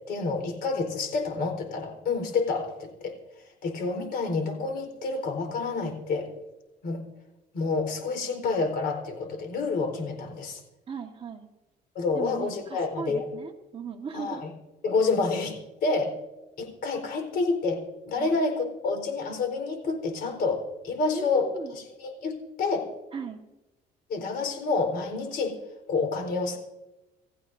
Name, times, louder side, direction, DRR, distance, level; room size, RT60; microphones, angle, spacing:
voice 1, 0.1-3.1 3.6-6.3 6.8-7.0 7.5-10.6 11.9-13.2 14.1-14.5 14.8-16.1 16.6-17.8 18.1-22.9 24.1-25.6 25.9-26.6, left 4 dB, 65° left, 4 dB, 4.4 m, -28 dB
voice 2, 10.9-11.5 12.1-14.4 18.2-18.3 21.1-21.7 23.1-23.4, right 5 dB, 35° right, 2 dB, 1.6 m, -37 dB
28.5 x 15.0 x 2.7 m, 1.0 s
cardioid pair, 110°, 17 cm